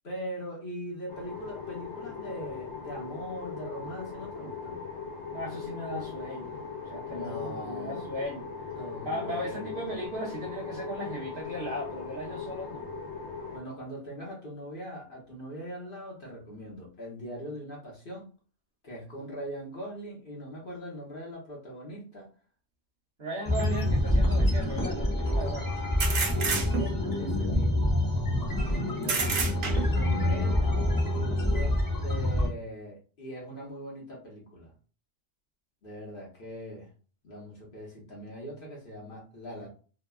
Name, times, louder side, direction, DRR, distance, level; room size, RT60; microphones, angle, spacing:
voice 1, 0.0-4.8 7.1-8.1 8.8-9.9 13.5-18.3 18.8-22.3 26.4-27.9 28.9-29.5 29.9-30.8 31.5-34.7 35.8-36.9 37.2-39.7, equal, 45° left, -3 dB, 0.9 m, -41 dB
sound 1, 1.1-13.6, left 5 dB, 75° left, 1.0 m, -39 dB
voice 2, 5.3-6.6 6.9-8.5 9.0-12.9 23.2-25.8 27.2-27.6, equal, 50° right, -3 dB, 0.8 m, -37 dB
sound 2, 23.4-32.5, left 1 dB, 20° left, 0.5 m, -26 dB
sound 3, 23.6-23.7 26.0-27.1 29.0-30.1, right 5 dB, 80° right, 1.1 m, -29 dB
2.8 x 2.2 x 2.2 m, 0.37 s
omnidirectional pair, 1.4 m